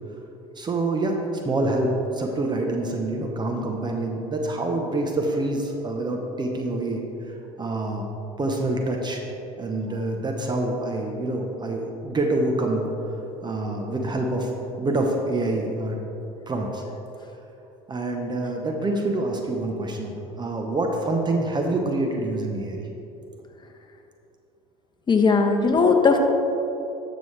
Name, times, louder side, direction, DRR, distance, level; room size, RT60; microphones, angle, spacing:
voice 1, 0.6-1.2 1.4-8.0 8.4-9.2 9.6-12.9 13.4-14.5 14.8-16.0 16.5-16.8 17.9-22.8, right 2 dB, 25° right, 2 dB, 1.0 m, -26 dB
voice 2, 25.1-26.2, left 4 dB, 30° left, 4 dB, 1.0 m, -18 dB
12.0 x 6.2 x 3.3 m, 3.0 s
hypercardioid pair, 80°, 16 cm